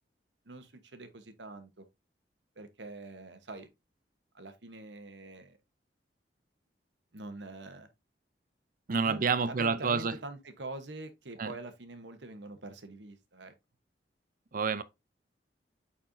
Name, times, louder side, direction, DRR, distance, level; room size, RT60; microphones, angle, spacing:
voice 1, 0.4-1.9 2.6-3.7 4.3-5.6 7.1-7.9 9.0-13.5, right 2 dB, 90° right, 1.1 m, -45 dB
voice 2, 8.9-10.1 11.4-11.5 14.5-14.8, right 5 dB, 50° right, 0.6 m, -28 dB
8.6 x 4.3 x 2.7 m
head